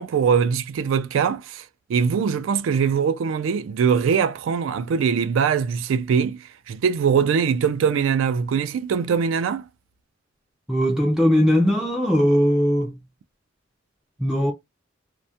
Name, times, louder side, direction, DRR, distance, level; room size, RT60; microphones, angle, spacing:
voice 1, 0.0-1.6 1.9-6.4 6.7-9.7, right 6 dB, 85° right, 0.3 m, -22 dB
voice 2, 10.7-12.9 14.2-14.5, equal, 5° right, 0.3 m, -19 dB
2.3 x 2.0 x 2.7 m
head